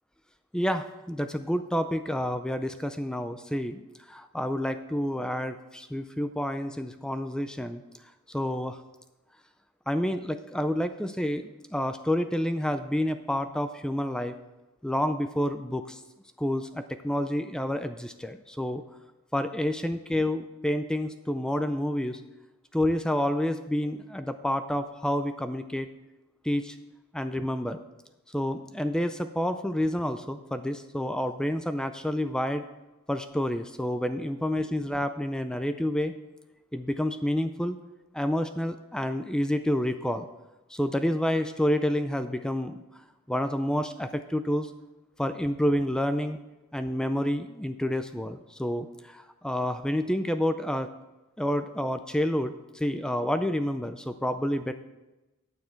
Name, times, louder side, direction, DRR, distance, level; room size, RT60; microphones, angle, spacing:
voice 1, 0.5-3.8 4.1-7.8 8.3-8.8 9.9-14.4 14.8-16.0 16.4-18.8 19.3-22.2 22.7-25.9 26.4-26.8 27.1-27.8 28.3-32.6 33.1-36.1 36.7-37.8 38.1-40.3 40.7-42.8 43.3-44.7 45.2-46.4 46.7-50.9 51.4-54.7, left 1 dB, 5° left, 9 dB, 0.4 m, -29 dB
9.5 x 8.7 x 4.5 m, 1.0 s
head